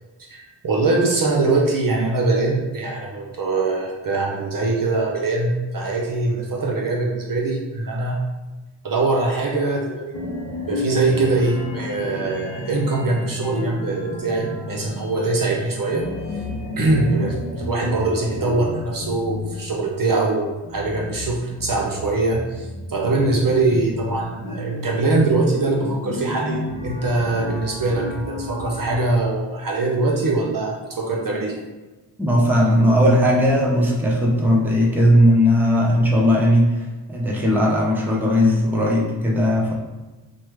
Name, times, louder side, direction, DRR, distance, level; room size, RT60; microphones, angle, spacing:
voice 1, 0.3-8.2 8.8-10.2 10.7-16.1 16.3-16.4 16.8-31.6, right 3 dB, 45° right, -1 dB, 0.7 m, -22 dB
sound 1, 10.1-29.2, left 1 dB, 60° left, 0.6 m, -32 dB
voice 2, 32.2-36.8 37.1-39.7, equal, 5° right, -3 dB, 0.6 m, -17 dB
3.1 x 2.2 x 3.0 m, 1.2 s
cardioid pair, 55°, 48 cm